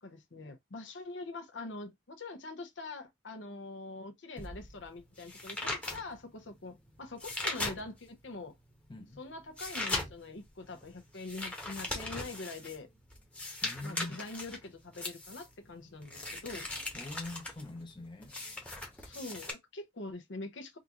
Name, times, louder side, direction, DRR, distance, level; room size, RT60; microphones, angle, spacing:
voice 1, 0.0-8.5 9.2-12.9 13.8-16.7 19.0-20.8, left 2 dB, 80° left, 0.8 m, -44 dB
sound 1, 4.4-8.2 8.7-19.5, left 2 dB, 5° left, 0.9 m, -40 dB
voice 2, 8.9-9.2 13.6-14.2 16.9-18.4, left 2 dB, 25° left, 0.6 m, -43 dB
3.7 x 2.5 x 2.9 m
head